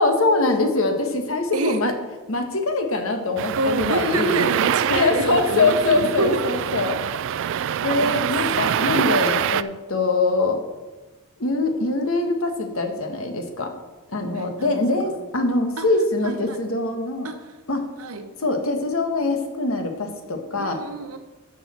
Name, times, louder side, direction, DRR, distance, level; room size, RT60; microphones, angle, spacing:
voice 1, 0.0-1.9 2.3-4.4 4.9-7.0 7.8-10.6 11.4-13.7 14.1-17.3 17.7-17.9 18.4-20.8, left 2 dB, 65° left, 5 dB, 1.3 m, -23 dB
sound 1, 3.4-9.6, right 9 dB, 60° right, 0.3 m, -25 dB
voice 2, 3.6-6.3 8.0-8.3 14.3-14.8 15.8-15.9 16.2-16.6 17.2-17.4 18.0-18.3 20.6-21.2, right 2 dB, 75° right, 7 dB, 1.1 m, -28 dB
12.0 x 6.5 x 4.3 m, 1.2 s
head